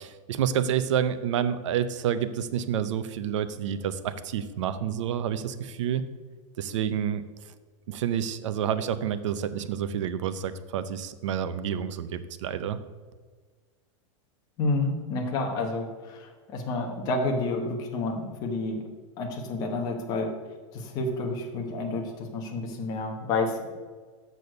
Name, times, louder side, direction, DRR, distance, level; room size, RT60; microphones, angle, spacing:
voice 1, 0.0-6.0 6.6-7.5 7.9-12.8, right 9 dB, 60° right, 13 dB, 0.6 m, -29 dB
voice 2, 14.6-18.8 19.2-20.3 20.7-23.7, left 2 dB, 20° left, 2 dB, 1.0 m, -29 dB
6.9 x 6.3 x 6.5 m, 1.4 s
supercardioid pair, 175°, 17 cm